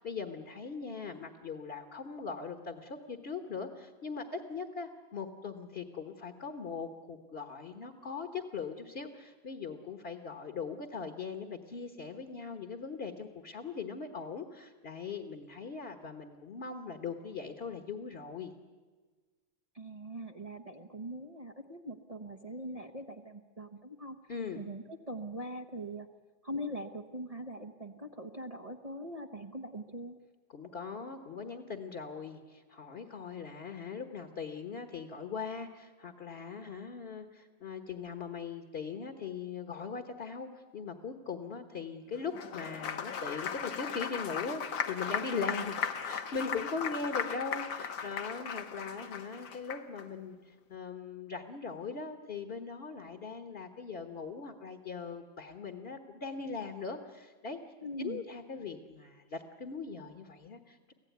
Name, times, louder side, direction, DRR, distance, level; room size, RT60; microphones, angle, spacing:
voice 1, 0.0-18.5 24.3-24.6 30.5-57.6 58.0-60.9, left 5 dB, 35° left, 6 dB, 1.3 m, -40 dB
voice 2, 19.7-24.2 24.5-26.1 26.4-30.2 57.8-58.2, right 1 dB, 30° right, 3 dB, 0.6 m, -42 dB
Applause, 42.2-50.0, left 7 dB, 80° left, 1.9 m, -37 dB
25.0 x 16.0 x 9.4 m, 1.4 s
omnidirectional pair, 2.1 m